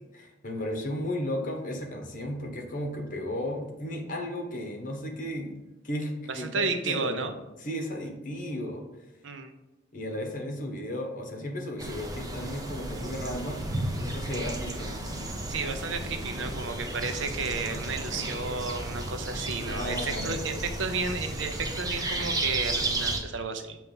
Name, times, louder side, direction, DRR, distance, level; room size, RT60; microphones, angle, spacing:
voice 1, 0.1-5.6 5.8-7.3 7.6-8.8 9.9-13.6 14.0-14.9 19.6-20.4, left 1 dB, 45° left, 3 dB, 1.2 m, -34 dB
voice 2, 6.3-7.3 9.2-9.5 15.5-23.8, right 4 dB, 80° right, 7 dB, 0.7 m, -32 dB
sound 1, 11.8-23.2, right 2 dB, 20° right, 0.8 m, -33 dB
6.9 x 3.1 x 5.4 m, 1.0 s
head